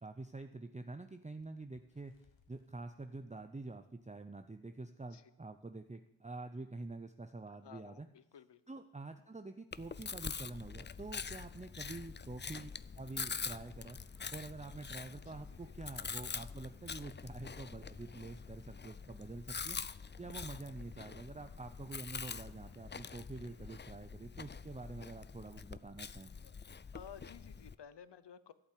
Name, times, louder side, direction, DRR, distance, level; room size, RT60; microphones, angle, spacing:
voice 1, 0.0-2.1 2.5-8.1 8.7-12.7 13.0-14.0 14.3-19.8 20.2-26.3, right 3 dB, 15° right, 7 dB, 0.6 m, -47 dB
Bird, 1.3-4.5 5.0-5.2 5.4-5.7 6.5-6.6, left 5 dB, 85° left, 1.4 m, -74 dB
voice 2, 7.6-8.6 11.8-12.1 15.3-15.7 26.4-26.5 26.9-28.5, left 8 dB, 65° left, 15 dB, 0.8 m, -55 dB
Chewing mastication, 9.7-27.7, left 5 dB, 25° left, 0.4 m, -45 dB
sound 1, 13.8-23.8, right 2 dB, 50° right, 2.4 m, -74 dB
12.0 x 8.5 x 8.4 m, 0.86 s
wide cardioid pair, 65°, 44 cm